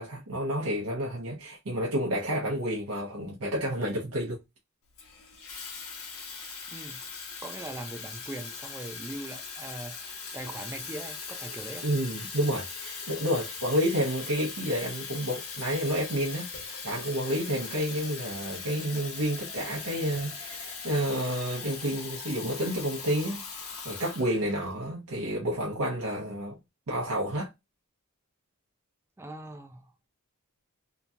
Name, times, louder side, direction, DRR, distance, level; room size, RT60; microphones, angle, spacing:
voice 1, 0.0-4.4 11.8-26.6 26.9-27.5, equal, 80° right, 0.8 m, -30 dB
Water tap faucet / Fill (with liquid), 5.0-24.7, left 5 dB, 80° left, 0.9 m, -40 dB
voice 2, 6.7-7.0 7.4-11.9 17.9-18.1 29.2-29.9, right 1 dB, 10° right, 0.3 m, -41 dB
2.9 x 2.3 x 2.6 m
head